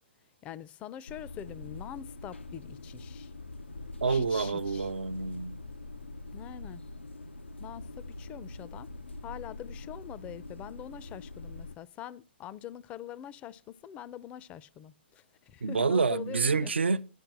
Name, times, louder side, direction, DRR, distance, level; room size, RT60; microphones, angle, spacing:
voice 1, 0.4-3.3 4.1-4.9 6.3-6.8 7.6-8.9 9.2-16.7, left 10 dB, 20° left, 0.4 m, -44 dB
sound 1, 1.1-11.8, left 2 dB, 90° left, 0.6 m, -44 dB
voice 2, 4.0-5.6 15.6-17.1, right 4 dB, 75° right, 0.6 m, -28 dB
10.5 x 4.5 x 7.5 m
figure-of-eight pair, 125°, 6 cm